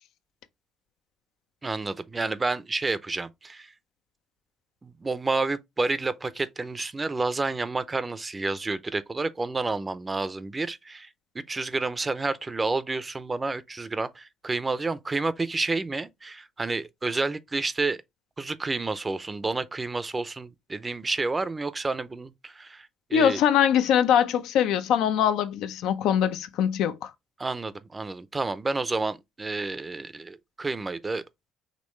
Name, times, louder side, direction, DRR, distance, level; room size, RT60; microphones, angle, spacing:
voice 1, 1.6-3.7 4.8-11.1 11.3-18.0 18.4-23.4 27.4-31.2, right 3 dB, 25° right, 0.6 m, -30 dB
voice 2, 23.1-27.1, left 9 dB, 80° left, 0.6 m, -22 dB
5.3 x 3.1 x 3.1 m
cardioid pair, 85°, 0 cm